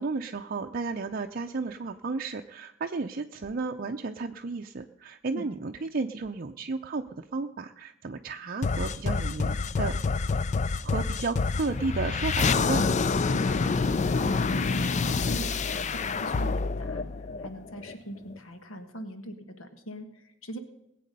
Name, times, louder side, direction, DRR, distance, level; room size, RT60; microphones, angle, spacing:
voice 1, 0.0-10.0 10.8-13.0, right 3 dB, 45° right, 4 dB, 0.5 m, -33 dB
sound 1, 8.6-17.9, left 4 dB, 35° left, 0.4 m, -27 dB
voice 2, 13.3-13.8 14.1-17.0 17.4-20.6, right 1 dB, 90° left, 8 dB, 1.5 m, -41 dB
20.0 x 8.4 x 5.3 m, 0.84 s
head